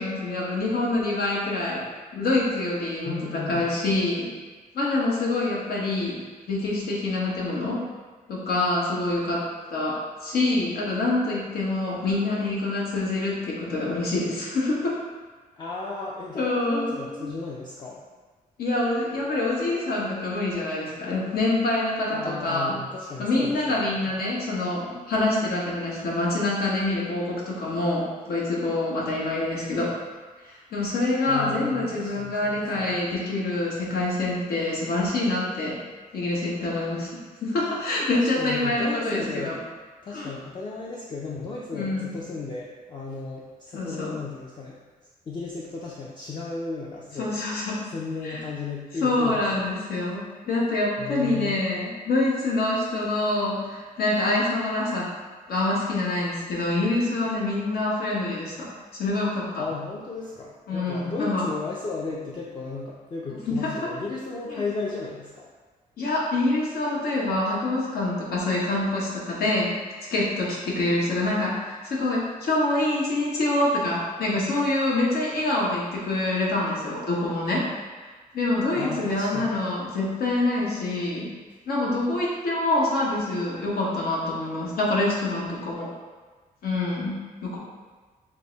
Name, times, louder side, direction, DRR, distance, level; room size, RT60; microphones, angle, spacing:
voice 1, 0.0-1.8 2.1-4.3 4.7-6.2 6.5-7.8 8.3-15.0 16.3-17.3 18.6-22.8 23.2-29.9 30.4-35.8 36.1-39.6 40.1-40.3 41.7-42.2 43.7-44.2 47.2-47.9 48.2-48.4 49.0-55.1 55.5-59.6 60.7-61.5 63.4-63.9 64.5-64.6 66.0-69.8 70.1-77.7 78.0-81.3 81.7-85.9 86.6-87.6, left 2 dB, 85° left, -4 dB, 1.1 m, -26 dB
voice 2, 3.0-3.7 15.6-18.0 22.1-24.2 31.3-33.0 38.1-39.6 40.0-44.8 45.3-47.4 47.9-49.7 51.0-51.6 59.6-65.5 78.8-79.7, left 4 dB, 30° left, -4 dB, 0.4 m, -35 dB
5.2 x 2.1 x 3.9 m, 1.4 s
wide cardioid pair, 165°, 15 cm